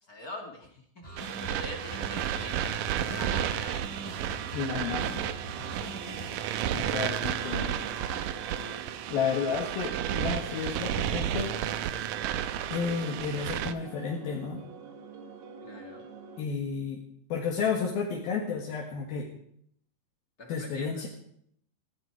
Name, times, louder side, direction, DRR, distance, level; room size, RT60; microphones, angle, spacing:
voice 1, 0.0-3.9 6.6-8.1 8.4-8.7 15.6-16.0 20.4-21.0, left 1 dB, 30° left, 2 dB, 2.2 m, -44 dB
sound 1, 1.0-9.1, right 2 dB, 10° left, 4.2 m, -43 dB
sound 2, 1.2-13.7, right 10 dB, 75° right, 2.3 m, -32 dB
sound 3, 4.1-16.4, right 5 dB, 55° right, 2.7 m, -48 dB
voice 2, 4.5-5.3 6.7-7.8 9.1-11.6 12.7-14.6 16.4-17.0 17.3-19.3 20.5-21.1, left 6 dB, 80° left, -1 dB, 3.7 m, -32 dB
18.5 x 15.5 x 4.8 m, 0.68 s
omnidirectional pair, 4.2 m